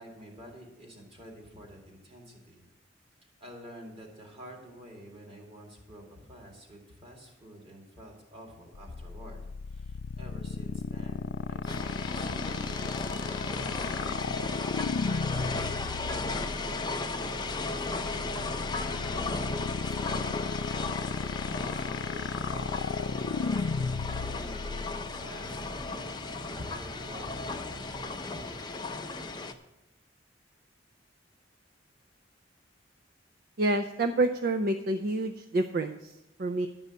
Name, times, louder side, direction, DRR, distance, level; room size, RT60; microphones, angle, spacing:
voice 1, 0.0-2.6 3.4-9.4 9.7-14.3 15.0-20.4 21.5-25.6 25.9-26.1 26.5-28.6, equal, 35° right, 0 dB, 2.4 m, -49 dB
sound 1, 8.7-25.9, left 5 dB, 85° left, 0.4 m, -35 dB
sound 2, 11.7-29.5, left 3 dB, 25° left, 0.7 m, -35 dB
sound 3, 12.1-28.3, left 1 dB, 90° right, 0.9 m, -50 dB
voice 2, 33.6-36.7, right 2 dB, 55° right, 7 dB, 0.5 m, -28 dB
11.5 x 5.4 x 8.2 m, 0.94 s
head